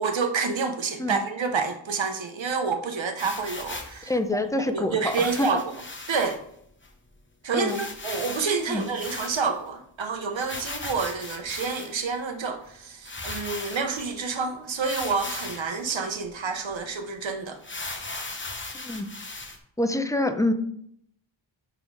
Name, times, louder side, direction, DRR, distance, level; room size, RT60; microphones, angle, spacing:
voice 1, 0.0-4.1 4.6-5.6 6.1-6.4 7.4-17.6, right 5 dB, 75° right, 6 dB, 0.9 m, -28 dB
sound 1, 3.2-4.0 5.0-6.4 6.8-6.9 7.1-7.2 7.7-9.7 10.4-12.1 12.7-12.8 13.0-14.1 14.8-15.7 16.2-16.3 16.7-16.8 17.6-19.6, left 2 dB, 25° left, 0.9 m, -37 dB
voice 2, 4.0-5.5 7.5-7.8 8.7-8.8 18.7-19.1 19.8-20.5, left 2 dB, 5° left, 8 dB, 0.5 m, -26 dB
7.0 x 3.8 x 4.7 m, 0.69 s
wide cardioid pair, 90°, 47 cm